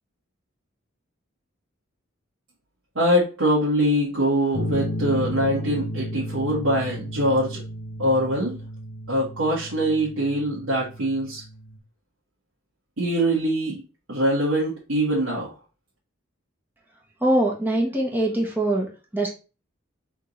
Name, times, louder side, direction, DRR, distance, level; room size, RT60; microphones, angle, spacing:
voice 1, 2.9-7.6 8.0-8.6 9.1-11.4 13.0-13.8 14.1-15.5, equal, 85° right, -6 dB, 1.4 m, -23 dB
sound 1, 4.5-11.8, equal, 75° left, 0.9 m, -33 dB
voice 2, 17.2-19.3, right 1 dB, 10° right, -1 dB, 1.1 m, -23 dB
3.6 x 3.5 x 4.0 m, 0.33 s
head